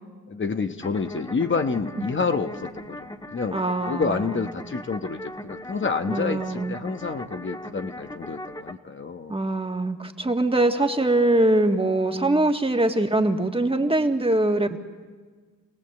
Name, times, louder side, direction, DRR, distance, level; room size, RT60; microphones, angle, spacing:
voice 1, 0.3-3.0 3.3-9.3, left 4 dB, 35° left, 6 dB, 1.2 m, -28 dB
sound 1, 0.8-8.7, left 1 dB, 15° left, 1.7 m, -39 dB
voice 2, 3.5-4.2 6.1-6.8 9.3-14.8, right 2 dB, 15° right, 5 dB, 1.9 m, -22 dB
28.5 x 18.0 x 7.9 m, 1.5 s
cardioid pair, 70°, 33 cm